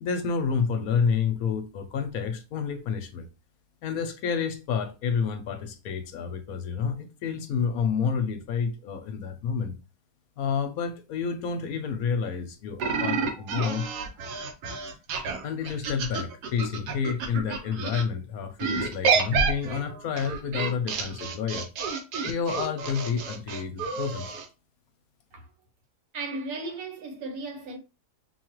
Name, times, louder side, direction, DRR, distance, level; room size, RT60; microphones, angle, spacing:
voice 1, 0.0-3.2 3.8-9.8 10.4-13.9 15.4-21.7 22.2-24.3, left 6 dB, 70° left, 1.0 m, -29 dB
sound 1, 12.8-18.0 18.6-24.5, right 5 dB, 85° right, 1.3 m, -29 dB
voice 2, 26.1-27.8, right 3 dB, 70° right, 1.4 m, -35 dB
5.9 x 2.3 x 3.0 m
omnidirectional pair, 1.7 m